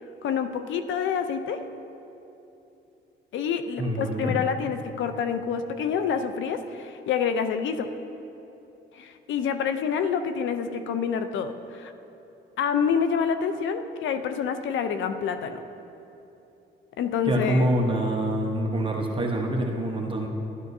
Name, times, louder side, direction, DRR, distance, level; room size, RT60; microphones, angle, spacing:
voice 1, 0.2-1.6 3.3-7.9 8.9-11.9 12.6-15.6 17.0-17.7, left 7 dB, 75° left, 9 dB, 0.6 m, -27 dB
voice 2, 3.8-4.4 17.2-20.3, right 1 dB, 25° right, 0 dB, 1.0 m, -26 dB
13.0 x 12.0 x 2.7 m, 2.9 s
cardioid pair, 90°, 20 cm